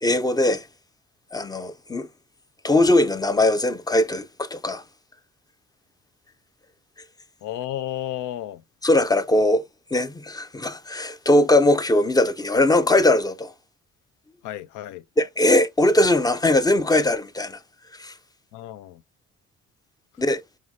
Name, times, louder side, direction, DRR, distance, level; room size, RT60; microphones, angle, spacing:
voice 1, 0.0-0.7 1.3-2.1 2.6-4.8 8.8-13.5 15.2-17.6 17.9-18.1 20.2-20.4, left 1 dB, 15° left, 0.4 m, -20 dB
voice 2, 7.4-8.6 14.4-15.1 18.5-19.0, left 12 dB, 90° left, 0.5 m, -32 dB
4.8 x 3.1 x 2.5 m
cardioid pair, 90°, 30 cm